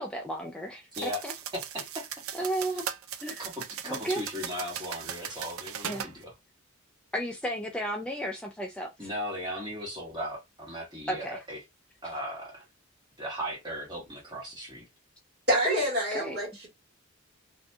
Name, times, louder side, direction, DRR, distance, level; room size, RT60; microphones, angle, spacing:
voice 1, 0.0-1.3 2.3-2.8 3.2-3.4 3.9-4.2 5.9-6.1 7.1-8.9 11.1-11.4 15.6-15.8 16.1-16.4, right 1 dB, 5° left, 0.3 m, -33 dB
sound 1, 0.9-6.1, right 9 dB, 90° right, 0.4 m, -38 dB
voice 2, 1.5-2.1 2.4-2.5 2.7-2.8 3.2-6.3 9.0-11.6 12.0-12.7 13.2-14.8, equal, 20° right, 1.3 m, -37 dB
voice 3, 15.5-16.7, equal, 55° right, 1.5 m, -27 dB
2.6 x 2.6 x 2.2 m
head